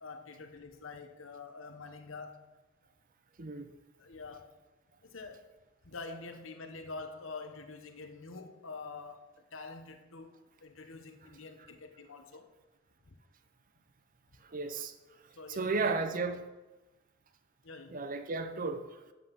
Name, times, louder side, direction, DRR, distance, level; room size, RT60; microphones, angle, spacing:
voice 1, 0.0-2.5 4.0-4.5 5.0-5.5 5.8-12.5 13.0-13.2 15.3-16.0 17.6-18.0, left 3 dB, 75° left, 1.0 m, -46 dB
voice 2, 3.4-3.7 14.5-14.9 15.5-16.5 17.9-19.0, right 4 dB, 40° right, 0.7 m, -34 dB
8.3 x 7.6 x 5.5 m
head